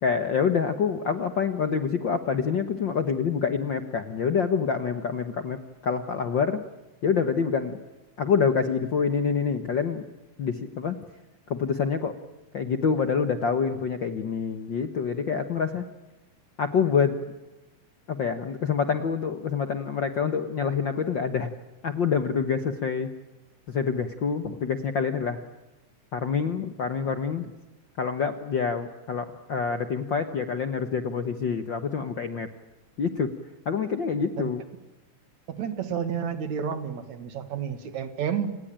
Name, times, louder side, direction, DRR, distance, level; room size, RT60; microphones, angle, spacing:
voice 1, 0.0-6.6 7.0-7.8 8.2-10.0 10.4-11.0 11.5-12.2 12.5-15.9 16.6-17.2 18.1-21.5 21.8-23.1 23.7-25.4 26.1-27.5 28.0-32.5 33.0-33.3 33.6-34.6, left 6 dB, 55° left, 10 dB, 1.3 m, -26 dB
voice 2, 35.5-38.6, right 7 dB, 65° right, 11 dB, 3.1 m, -30 dB
29.0 x 19.0 x 8.9 m, 1.1 s
omnidirectional pair, 3.5 m